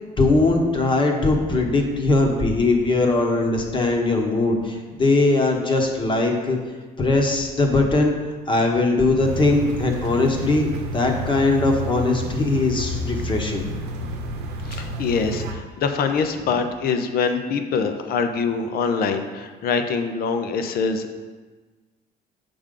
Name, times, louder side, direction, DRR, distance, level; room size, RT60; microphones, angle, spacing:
voice 1, 0.2-6.6 7.0-8.1 8.5-13.7, left 2 dB, 30° left, 2 dB, 1.1 m, -20 dB
sound 1, 9.2-15.5, right 1 dB, 90° right, 0.8 m, -30 dB
voice 2, 14.6-21.1, left 5 dB, 65° left, 7 dB, 0.7 m, -24 dB
7.1 x 5.1 x 3.8 m, 1.3 s
cardioid pair, 110°, 17 cm